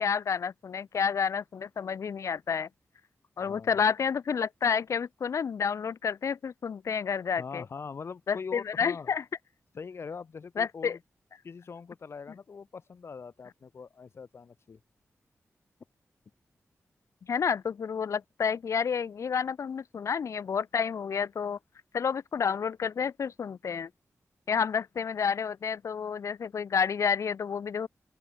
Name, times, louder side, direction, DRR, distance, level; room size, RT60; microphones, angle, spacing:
voice 1, 0.0-2.7 3.4-7.6 8.3-9.2 10.6-11.0 17.3-21.6 21.9-23.9 24.5-27.9, left 6 dB, 75° left, 2.0 m, -30 dB
voice 2, 3.4-3.8 7.4-9.1 9.7-11.0 11.4-14.8, left 5 dB, 55° left, 6.0 m, -42 dB
open air
wide cardioid pair, 155°, 5 cm